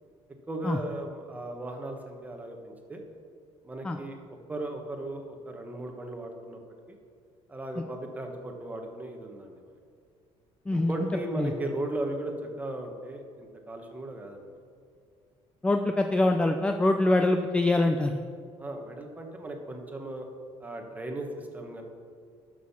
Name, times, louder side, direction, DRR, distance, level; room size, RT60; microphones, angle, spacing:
voice 1, 0.5-3.0 3.6-4.2 4.5-6.6 6.9-7.0 7.5-9.7 10.7-14.6 18.6-20.3 20.6-21.8, right 1 dB, 15° right, 3 dB, 1.3 m, -37 dB
voice 2, 15.6-18.2, left 2 dB, 10° left, 5 dB, 0.4 m, -24 dB
12.5 x 6.4 x 5.7 m, 2.2 s
cardioid pair, 145°, 11 cm